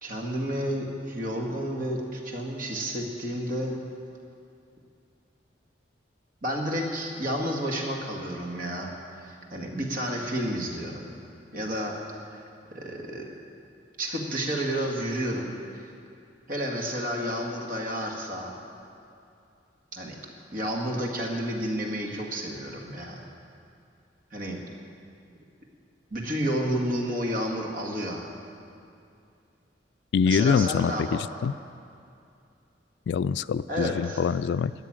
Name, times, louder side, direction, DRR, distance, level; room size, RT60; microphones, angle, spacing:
voice 1, 0.0-3.7 6.4-8.9 9.2-11.1 11.5-12.0 12.3-12.4 12.7-13.3 14.0-15.6 16.5-18.5 19.9-20.2 20.5-23.2 24.3-24.6 26.1-28.2 30.3-31.3 33.7-34.2, equal, 50° right, 0 dB, 2.0 m, -31 dB
voice 2, 30.1-31.5 33.1-34.7, left 6 dB, 70° left, 16 dB, 0.3 m, -25 dB
13.5 x 9.5 x 8.9 m, 2.5 s
head